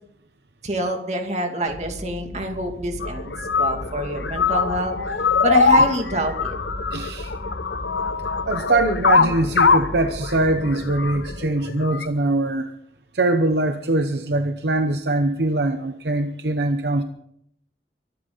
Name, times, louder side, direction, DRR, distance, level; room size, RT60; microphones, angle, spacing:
voice 1, 0.6-3.3 3.6-4.9 5.4-6.6, right 1 dB, 40° right, 3 dB, 2.5 m, -26 dB
sound 1, 1.7-11.4, left 1 dB, 15° left, 7.5 m, -36 dB
sound 2, 3.0-12.1, left 5 dB, 75° left, 0.9 m, -22 dB
voice 2, 6.9-7.3 8.5-12.7 13.1-17.0, right 2 dB, 65° right, 7 dB, 0.9 m, -22 dB
24.0 x 11.5 x 4.0 m, 0.72 s
head